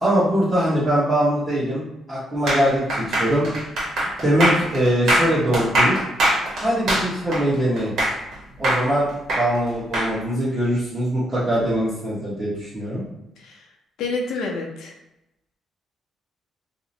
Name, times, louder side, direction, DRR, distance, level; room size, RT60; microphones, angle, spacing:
voice 1, 0.0-3.5 4.2-6.0 6.6-7.9 8.6-9.1 9.3-13.0, equal, 20° right, -11 dB, 1.1 m, -22 dB
sound 1, 2.5-8.3 8.6-10.1, right 1 dB, 70° right, 1.0 m, -22 dB
voice 2, 13.4-13.7 14.0-14.9, left 3 dB, 85° left, 0 dB, 0.5 m, -28 dB
2.8 x 2.0 x 2.6 m, 0.88 s
cardioid pair, 90°, 0 cm